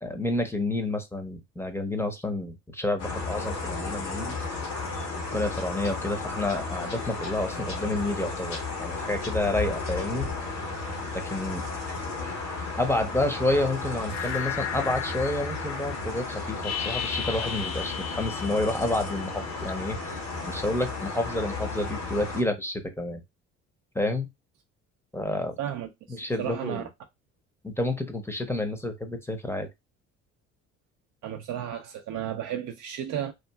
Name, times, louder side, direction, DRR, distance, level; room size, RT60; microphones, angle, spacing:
voice 1, 0.0-4.4 5.1-10.3 11.1-11.6 12.8-23.2 23.9-24.3 25.1-25.6 26.1-26.9 27.6-29.7, left 2 dB, 5° left, 0.7 m, -29 dB
sound 1, 3.0-22.4, left 3 dB, 85° left, 1.1 m, -34 dB
sound 2, 14.1-19.5, left 8 dB, 50° left, 0.7 m, -35 dB
voice 2, 25.6-26.8 31.2-33.3, right 10 dB, 55° right, 0.5 m, -33 dB
2.9 x 2.5 x 2.2 m
hypercardioid pair, 60°, 35 cm